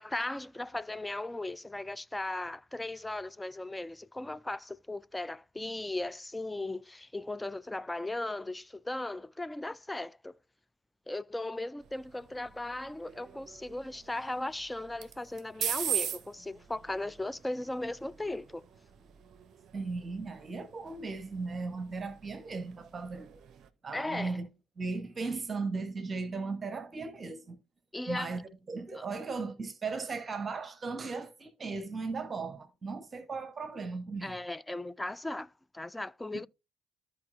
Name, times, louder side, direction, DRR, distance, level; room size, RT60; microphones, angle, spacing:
voice 1, 0.0-10.4 11.1-18.6 23.9-24.4 27.9-28.3 29.0-29.1 34.2-36.5, left 2 dB, 10° left, 0.4 m, -37 dB
sound 1, 11.8-23.7, right 9 dB, 50° right, 0.6 m, -42 dB
voice 2, 19.7-23.4 23.8-24.5 24.8-27.6 28.1-28.4 28.7-34.4 36.3-36.4, right 4 dB, 30° right, 1.1 m, -37 dB
13.5 x 4.8 x 2.5 m
figure-of-eight pair, 50°, 0 cm